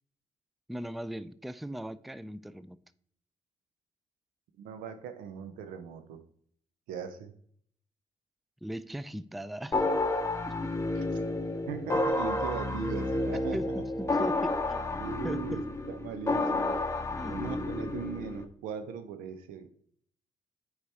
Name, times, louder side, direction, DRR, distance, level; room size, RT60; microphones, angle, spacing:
voice 1, 0.7-2.8 8.6-9.8 10.4-10.7 13.5-14.9 15.2-15.6 17.2-17.5, equal, ahead, 0.3 m, -39 dB
voice 2, 4.6-6.2 6.9-7.3 11.0-11.1 11.7-13.6 15.0-16.9 17.3-19.7, right 7 dB, 80° right, 0.6 m, -39 dB
sound 1, 9.7-18.4, left 2 dB, 20° left, 0.7 m, -30 dB
8.1 x 4.9 x 2.8 m
hypercardioid pair, 45°, 14 cm